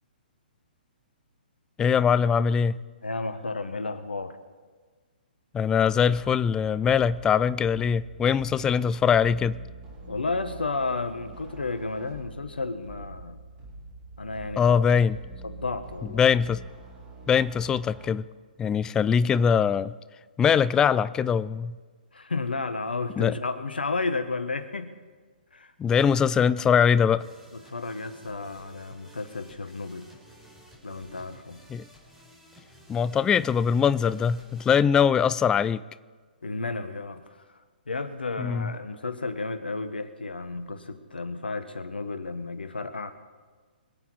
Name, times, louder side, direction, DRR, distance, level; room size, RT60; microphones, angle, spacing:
voice 1, 1.8-2.8 5.5-9.6 14.6-15.2 16.1-16.6 17.3-18.2 18.6-19.9 20.4-21.8 23.2-23.4 25.8-27.2 31.7-31.8 32.9-35.8 38.4-38.7, left 7 dB, 10° left, 16 dB, 0.3 m, -22 dB
voice 2, 3.0-4.4 10.1-13.4 14.2-14.9 15.4-16.2 22.1-24.9 25.5-25.7 27.5-30.1 30.8-31.6 36.4-37.4 37.9-43.1, left 3 dB, 80° left, 9 dB, 1.4 m, -32 dB
sound 1, 6.1-18.1, right 3 dB, 30° right, 5.9 m, -45 dB
sound 2, 27.2-34.8, right 1 dB, 5° right, 4.6 m, -53 dB
25.5 x 8.5 x 4.8 m, 1.5 s
figure-of-eight pair, 130°, 5 cm